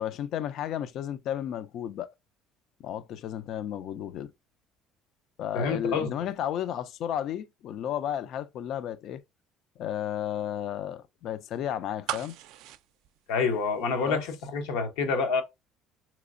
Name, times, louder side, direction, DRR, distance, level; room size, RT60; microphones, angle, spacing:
voice 1, 0.0-2.1 2.8-4.3 5.4-9.2 9.8-12.4 14.1-14.2, left 10 dB, 60° left, 0.3 m, -33 dB
voice 2, 5.5-6.1 13.3-15.4, left 4 dB, 85° left, 0.9 m, -27 dB
sound 1, 12.1-14.1 14.4-14.5, right 13 dB, 80° right, 0.4 m, -37 dB
4.0 x 2.9 x 2.5 m
cardioid pair, 120°, 0 cm